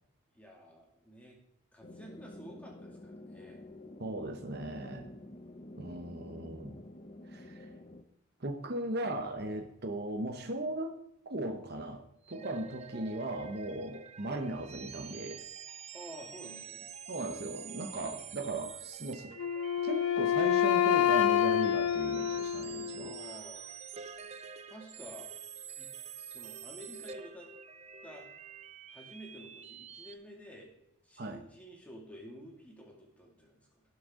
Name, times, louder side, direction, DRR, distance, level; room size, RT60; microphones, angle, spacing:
voice 1, 0.3-1.4 1.7-3.7 12.3-12.5 13.7-13.9 15.9-16.8 17.9-18.3 22.9-23.6 24.7-25.3 25.8-25.9 26.2-27.5 28.0-28.3 28.9-30.7 31.0-33.8, equal, 5° left, -1 dB, 2.3 m, -51 dB
sound 1, 1.8-8.0, left 1 dB, 30° left, 0.6 m, -49 dB
voice 2, 4.0-5.1 5.8-6.7 7.3-7.7 8.4-11.0 11.3-15.4 17.1-19.3 19.8-23.2 31.2-31.4, right 2 dB, 45° right, 5 dB, 0.9 m, -37 dB
sound 2, 12.3-30.1, right 7 dB, 30° right, 0.5 m, -47 dB
Wind instrument woodwind instrument, 19.4-23.3, left 10 dB, 90° left, 0.4 m, -28 dB
18.0 x 6.3 x 3.7 m, 0.78 s
head